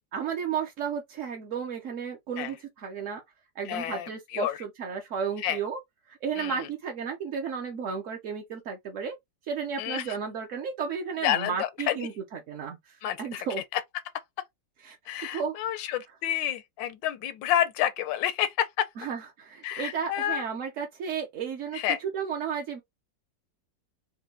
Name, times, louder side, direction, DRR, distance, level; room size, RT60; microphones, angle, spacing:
voice 1, 0.1-3.2 3.6-5.8 6.1-9.2 9.5-13.6 14.8-15.6 19.0-22.8, right 6 dB, 60° right, 0.8 m, -33 dB
voice 2, 3.6-4.6 5.4-5.6 6.4-6.7 9.8-10.0 11.2-12.1 13.0-13.5 13.7-13.8 15.1-18.9 19.6-20.4 21.7-22.0, left 11 dB, 80° left, 1.3 m, -29 dB
4.4 x 2.2 x 3.7 m
omnidirectional pair, 2.0 m